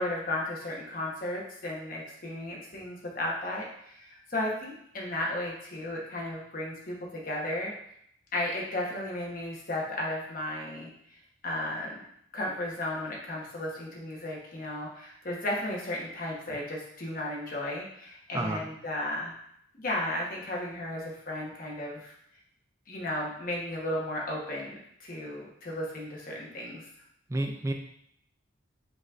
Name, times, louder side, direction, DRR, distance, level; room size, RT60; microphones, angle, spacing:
voice 1, 0.0-7.7 8.3-10.9 11.4-12.0 12.3-19.3 19.8-22.1 22.9-26.8, left 1 dB, 45° left, -2 dB, 1.0 m, -34 dB
voice 2, 18.3-18.7 27.3-27.7, right 1 dB, 15° right, 4 dB, 0.3 m, -30 dB
5.1 x 3.8 x 2.4 m, 0.71 s
head